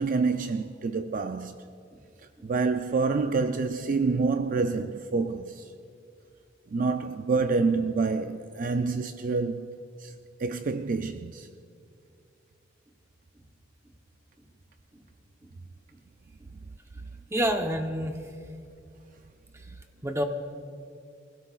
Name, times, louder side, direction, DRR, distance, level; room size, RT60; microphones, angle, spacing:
voice 1, 0.0-1.6 2.4-5.7 6.7-9.7 10.0-10.1 10.4-11.5, right 4 dB, 45° right, 0.4 m, -27 dB
voice 2, 17.3-18.2 20.0-20.2, equal, 15° right, 0.9 m, -28 dB
25.0 x 16.5 x 2.4 m
head